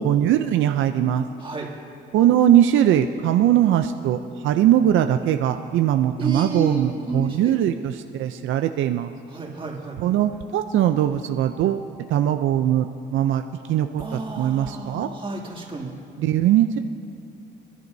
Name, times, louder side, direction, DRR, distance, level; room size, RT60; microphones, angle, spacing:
voice 1, 0.0-1.3 2.1-9.1 10.0-13.4 13.7-15.1 16.2-16.8, right 11 dB, 80° right, 7 dB, 0.5 m, -20 dB
voice 2, 6.2-7.5 9.3-10.0 14.0-15.9, right 2 dB, 25° right, -2 dB, 2.5 m, -31 dB
26.0 x 11.0 x 2.7 m, 2.5 s
cardioid pair, 90°, 20 cm